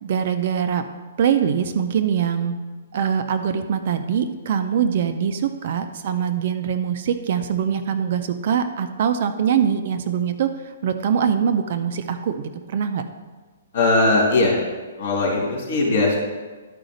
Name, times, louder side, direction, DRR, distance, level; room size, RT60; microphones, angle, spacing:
voice 1, 0.0-0.9 1.2-2.6 2.9-13.0, right 8 dB, 40° right, 8 dB, 0.4 m, -23 dB
voice 2, 13.7-14.6 15.0-16.2, left 2 dB, 50° left, -2 dB, 2.8 m, -19 dB
12.0 x 4.9 x 3.9 m, 1.3 s
hypercardioid pair, 175°, 0 cm